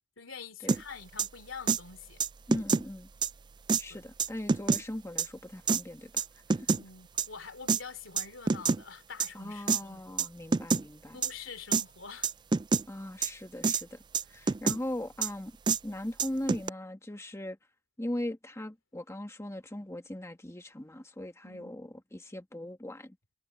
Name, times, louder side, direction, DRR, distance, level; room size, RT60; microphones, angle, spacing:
voice 1, 0.0-2.2 3.9-4.0 6.7-10.3 11.1-12.3 21.4-21.8, left 5 dB, 85° left, 2.8 m, -46 dB
sound 1, 0.7-0.8 1.2-1.3 1.7-1.8 2.2-2.8 3.2-3.3 3.7-3.8 4.2-4.8 5.2-5.3 5.7-5.8 6.2-6.8 7.2-7.3 7.7-7.8 8.2-8.8 9.2-9.3 9.7-9.8 10.2-10.3 10.5-10.8 11.2-11.3 11.7-11.8 12.2-12.8 13.2-13.3 13.6-13.8 14.1-14.8 15.2-15.3 15.7-15.8 16.2-16.7, right 4 dB, 25° right, 0.3 m, -26 dB
voice 2, 2.5-3.1 3.8-6.7 9.3-11.2 12.9-15.6 15.8-17.6 18.0-23.2, left 1 dB, 15° left, 1.4 m, -39 dB
head